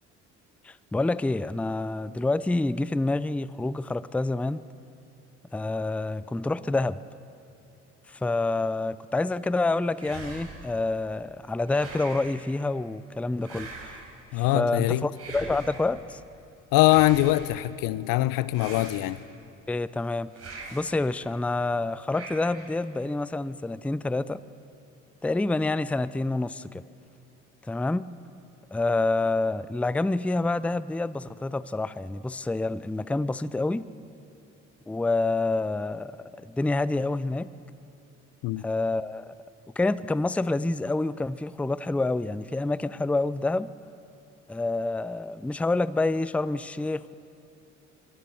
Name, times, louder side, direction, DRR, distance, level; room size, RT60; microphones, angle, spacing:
voice 1, 0.6-4.6 5.5-7.0 8.1-14.0 14.3-16.2 19.7-20.3 20.7-24.4 25.2-26.8 27.7-28.0 28.7-33.9 34.9-36.1 36.4-37.5 38.6-39.3 39.8-43.7 44.5-47.1, left 2 dB, 5° left, 0.5 m, -27 dB
sound 1, 10.0-10.8 11.7-12.4 13.4-14.2 15.1-15.9 16.8-17.6 18.5-19.4 20.3-21.0 22.1-22.8, right 3 dB, 40° right, 5.9 m, -42 dB
voice 2, 14.3-15.1 16.7-19.2 38.4-38.6, left 17 dB, 65° left, 0.7 m, -23 dB
24.0 x 18.5 x 7.0 m
hypercardioid pair, 65°, 36 cm